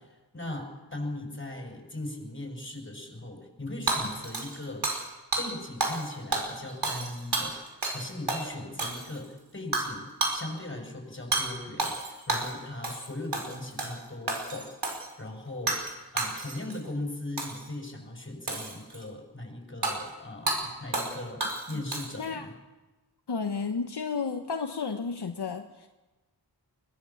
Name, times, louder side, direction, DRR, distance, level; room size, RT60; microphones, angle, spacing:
voice 1, 0.0-4.9 5.4-14.7 15.2-22.5, left 1 dB, 30° left, 3 dB, 6.5 m, -39 dB
Hammer / Shatter, 3.9-5.1 5.3-5.5 5.8-6.1 6.3-8.0 8.3-8.4 8.8-9.3 9.7-9.9 10.2-10.4 11.3-11.5 11.8-12.5 12.8-13.1 13.3-14.0 14.3-15.1 15.7-15.9 16.2-16.8 17.4-17.7 18.5-19.0 19.8-20.0 20.5-20.6 20.9-21.1 21.4-22.3, right 2 dB, 70° right, 5.1 m, -30 dB
voice 2, 23.3-25.9, left 5 dB, 70° left, 5 dB, 1.3 m, -32 dB
22.0 x 18.0 x 7.3 m, 1.1 s
cardioid pair, 40°, 41 cm